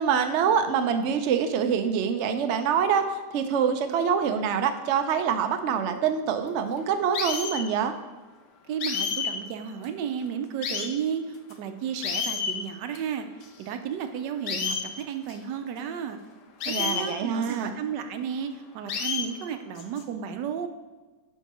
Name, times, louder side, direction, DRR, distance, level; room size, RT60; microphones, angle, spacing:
voice 1, 0.0-7.9 16.7-17.7, right 7 dB, 70° right, 7 dB, 0.7 m, -25 dB
sound 1, 7.1-7.7 8.8-9.3 9.8-9.9 10.6-10.9 11.5-11.6 12.0-12.5 13.0-13.1 13.4-13.5 14.5-14.9 15.3-15.4 16.6-17.0 17.5-17.6 18.9-19.3 19.8-20.0, left 6 dB, 80° left, 1.4 m, -29 dB
voice 2, 8.7-13.3 13.6-16.2 16.7-20.7, right 8 dB, 85° right, 8 dB, 1.3 m, -33 dB
9.6 x 3.6 x 4.2 m, 1.2 s
omnidirectional pair, 1.8 m